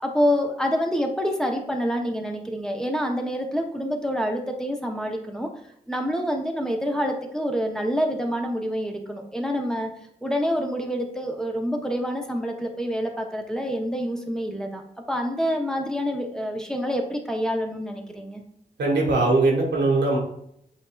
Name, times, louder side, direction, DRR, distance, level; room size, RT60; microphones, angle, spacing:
voice 1, 0.0-5.5 5.9-9.9 10.2-14.8 15.1-18.4, equal, 5° left, 2 dB, 0.8 m, -27 dB
voice 2, 18.8-20.2, right 2 dB, 85° right, -2 dB, 1.5 m, -20 dB
7.8 x 2.7 x 2.4 m, 0.73 s
cardioid pair, 60°, 18 cm